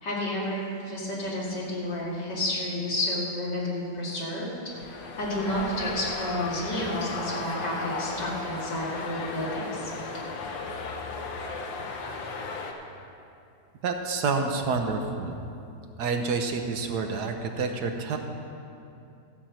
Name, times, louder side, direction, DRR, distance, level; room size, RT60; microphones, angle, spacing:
voice 1, 0.0-4.5 4.8-4.9 5.2-9.9, left 1 dB, 70° left, -5 dB, 3.0 m, -31 dB
sound 1, 4.7-12.7, left 3 dB, 90° left, 1.6 m, -35 dB
voice 2, 13.8-15.4 16.0-18.2, right 4 dB, 70° right, 4 dB, 1.3 m, -28 dB
13.5 x 5.7 x 7.6 m, 2.6 s
omnidirectional pair, 1.9 m